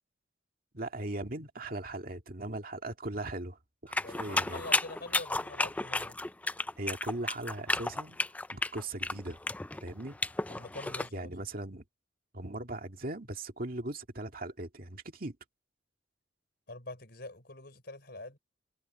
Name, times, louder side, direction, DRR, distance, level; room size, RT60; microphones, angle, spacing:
voice 1, 0.7-4.6 6.8-8.2 8.5-9.4 9.8-10.2 11.1-11.8 12.3-15.4, right 2 dB, 50° right, 2.2 m, -39 dB
sound 1, 3.9-11.1, left 2 dB, 10° left, 0.3 m, -32 dB
voice 2, 4.0-6.2 10.5-11.3 16.7-18.4, left 2 dB, 55° left, 4.6 m, -45 dB
head